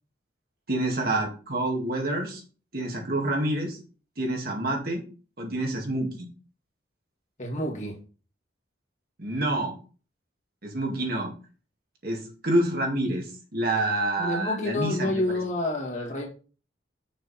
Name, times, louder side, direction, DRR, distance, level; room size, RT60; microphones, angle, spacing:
voice 1, 0.7-2.4 2.7-3.8 4.2-5.0 5.4-6.3 9.2-9.8 10.6-11.3 12.0-15.1, right 1 dB, 50° right, 2.0 m, -27 dB
voice 2, 7.4-8.0 14.2-16.3, left 1 dB, 40° left, 1.9 m, -28 dB
6.5 x 5.9 x 4.2 m
head